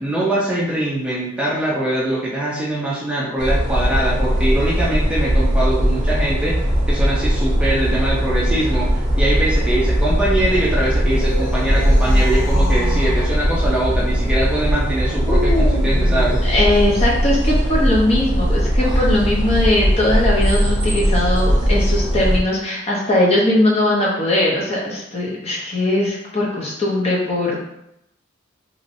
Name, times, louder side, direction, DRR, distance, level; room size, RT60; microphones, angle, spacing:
voice 1, 0.0-6.6 6.9-16.4, right 1 dB, 5° right, -7 dB, 0.5 m, -22 dB
sound 1, 3.4-22.4, equal, 20° right, 0.8 m, -19 dB
sound 2, 11.0-13.3 15.2-17.0 18.6-19.1, left 2 dB, 65° left, 0.8 m, -29 dB
voice 2, 16.4-27.6, left 1 dB, 30° left, -4 dB, 0.7 m, -19 dB
3.0 x 2.7 x 2.6 m, 0.81 s
head